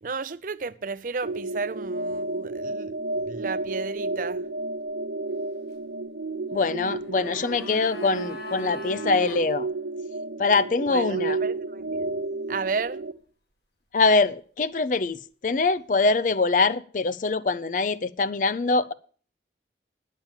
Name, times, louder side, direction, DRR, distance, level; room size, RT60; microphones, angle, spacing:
voice 1, 0.0-2.9 3.2-4.4 10.9-12.1 12.5-13.0, right 4 dB, 50° right, 0.5 m, -33 dB
sound 1, 1.2-13.1, right 2 dB, 80° right, 1.0 m, -32 dB
voice 2, 6.5-9.7 10.4-11.4 13.9-18.9, left 3 dB, 45° left, 0.5 m, -23 dB
sound 2, 6.8-9.4 9.7-9.8, left 2 dB, 65° left, 1.9 m, -41 dB
10.5 x 7.3 x 7.2 m
head